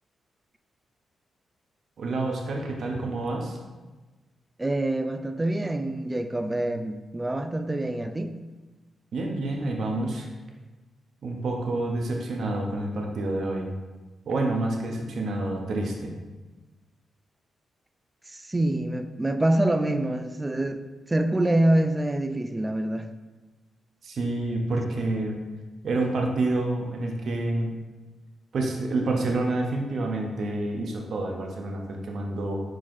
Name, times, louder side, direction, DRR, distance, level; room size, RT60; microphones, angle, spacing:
voice 1, 2.0-3.6 9.1-10.3 11.2-13.7 14.3-16.2 24.0-25.4 25.8-27.7 28.5-32.6, right 2 dB, 65° right, 1 dB, 0.7 m, -28 dB
voice 2, 4.6-8.4 18.3-20.8 21.1-23.1, right 1 dB, 20° right, 8 dB, 0.3 m, -26 dB
4.7 x 3.8 x 2.5 m, 1.2 s
cardioid pair, 60°, 0 cm